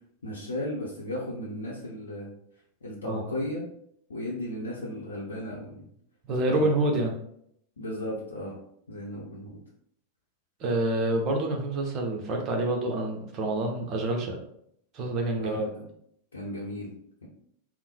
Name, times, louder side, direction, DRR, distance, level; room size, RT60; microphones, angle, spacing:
voice 1, 0.2-2.3 2.8-3.6 4.1-5.9 6.5-6.7 7.8-8.6 8.9-9.6 15.3-15.8 16.3-16.9 17.2-17.3, left 1 dB, 70° left, -5 dB, 0.7 m, -35 dB
voice 2, 3.0-3.4 6.3-7.2 10.6-14.4 14.9-15.6, right 2 dB, 35° right, 1 dB, 0.9 m, -27 dB
3.6 x 2.2 x 4.4 m, 0.70 s
figure-of-eight pair, 90°, 0 cm